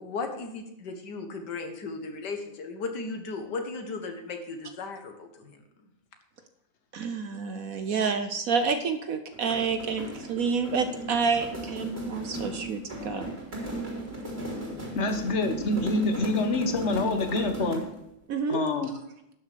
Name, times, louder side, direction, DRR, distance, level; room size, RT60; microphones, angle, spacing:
voice 1, 0.0-5.6, left 3 dB, 65° left, 6 dB, 2.0 m, -36 dB
voice 2, 6.9-13.3 18.3-18.6, right 5 dB, 60° right, 9 dB, 1.0 m, -28 dB
sound 1, 9.3-18.0, right 1 dB, 30° right, 3.2 m, -36 dB
voice 3, 14.9-17.8 18.5-18.9, left 2 dB, 40° left, 7 dB, 1.3 m, -26 dB
11.5 x 6.7 x 6.7 m, 0.80 s
omnidirectional pair, 2.0 m